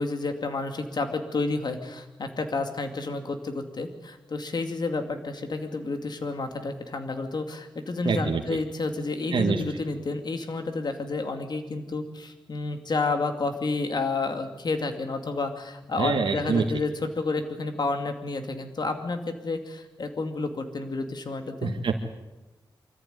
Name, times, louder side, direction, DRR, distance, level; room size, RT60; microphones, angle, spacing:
voice 1, 0.0-21.7, left 3 dB, 60° left, 6 dB, 2.5 m, -30 dB
voice 2, 8.0-8.4 9.3-9.6 16.0-16.6 21.6-22.0, right 5 dB, 90° right, 3 dB, 1.5 m, -25 dB
25.0 x 14.0 x 9.4 m, 1.1 s
wide cardioid pair, 85°, 8 cm